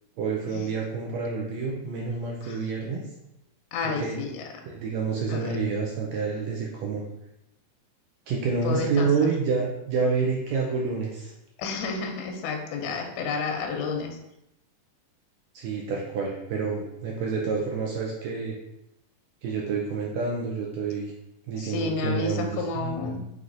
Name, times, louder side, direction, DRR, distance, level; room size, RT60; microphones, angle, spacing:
voice 1, 0.2-3.0 3.8-4.2 4.6-7.0 8.3-11.3 15.5-18.6 19.4-21.1 21.5-23.2, right 4 dB, 85° right, -1 dB, 1.5 m, -28 dB
voice 2, 3.7-4.5 5.3-5.5 8.6-9.1 11.6-14.2 21.6-23.2, left 4 dB, 80° left, 2 dB, 1.8 m, -30 dB
5.5 x 3.2 x 2.5 m, 0.85 s
omnidirectional pair, 3.7 m